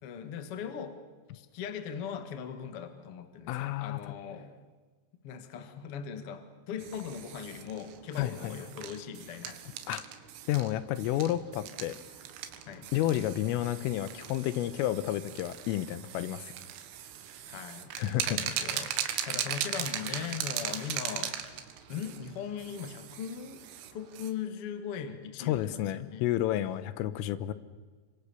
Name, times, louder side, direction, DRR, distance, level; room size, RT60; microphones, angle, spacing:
voice 1, 0.0-1.0 1.3-4.5 5.2-9.6 12.7-12.9 17.4-17.9 18.3-21.4 21.9-23.6 23.9-26.2, left 7 dB, 60° left, 8 dB, 1.4 m, -39 dB
voice 2, 3.5-4.0 8.2-8.6 9.9-10.0 10.5-12.0 12.9-16.5 18.0-18.4 25.5-27.5, left 13 dB, 85° left, 14 dB, 3.6 m, -31 dB
sound 1, 6.8-24.3, right 10 dB, 80° right, 4.1 m, -39 dB
29.0 x 25.5 x 7.0 m, 1.4 s
omnidirectional pair, 5.8 m